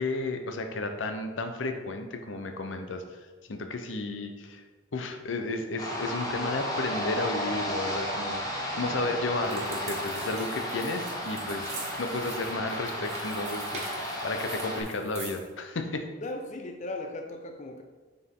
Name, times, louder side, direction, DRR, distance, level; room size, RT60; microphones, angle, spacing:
voice 1, 0.0-3.0 3.5-4.6 4.9-11.7 12.0-16.1, left 2 dB, 85° left, 6 dB, 0.7 m, -33 dB
sound 1, 5.8-14.8, equal, 20° left, 1.0 m, -33 dB
sound 2, 9.4-15.5, right 4 dB, 35° right, 1.3 m, -44 dB
voice 2, 16.2-17.8, left 2 dB, 40° left, 4 dB, 0.5 m, -37 dB
6.7 x 4.4 x 3.7 m, 1.4 s
head